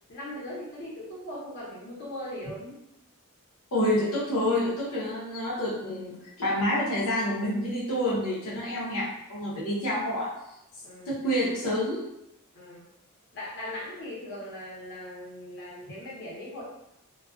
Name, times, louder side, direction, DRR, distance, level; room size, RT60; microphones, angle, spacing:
voice 1, 0.1-2.8 10.8-11.2 12.5-12.9 13.3-16.6, left 1 dB, 50° left, -7 dB, 0.9 m, -39 dB
voice 2, 3.7-10.3 11.1-12.1, left 1 dB, 85° left, -7 dB, 0.8 m, -28 dB
2.3 x 2.3 x 2.3 m, 0.82 s
head